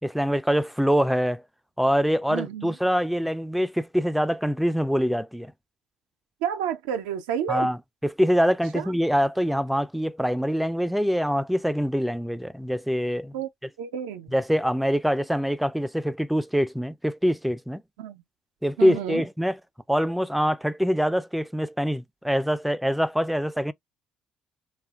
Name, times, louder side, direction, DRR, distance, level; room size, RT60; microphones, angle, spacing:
voice 1, 0.0-1.4 1.8-5.5 7.5-7.8 8.0-13.3 14.3-17.8 18.6-19.6 19.9-23.7, equal, 5° right, 0.3 m, -24 dB
voice 2, 2.3-2.7 6.4-7.7 8.7-8.9 13.3-13.5 13.8-14.3 18.0-18.2 18.8-19.2, right 9 dB, 85° right, 0.3 m, -30 dB
2.6 x 2.3 x 2.3 m
hypercardioid pair, 55°, 3 cm